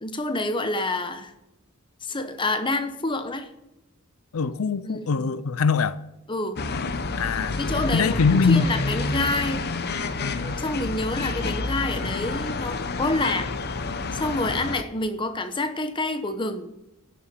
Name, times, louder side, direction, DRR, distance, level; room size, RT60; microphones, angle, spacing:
voice 1, 0.0-1.3 2.0-3.5 4.8-5.4 6.3-6.6 7.6-9.7 10.4-13.5 14.1-16.7, left 2 dB, 25° left, 1.0 m, -28 dB
voice 2, 4.3-6.0 7.2-7.6 7.9-8.7 10.2-10.6, left 5 dB, 85° left, 0.5 m, -23 dB
sound 1, 6.6-14.8, left 3 dB, 50° left, 0.8 m, -29 dB
12.0 x 7.0 x 9.0 m
head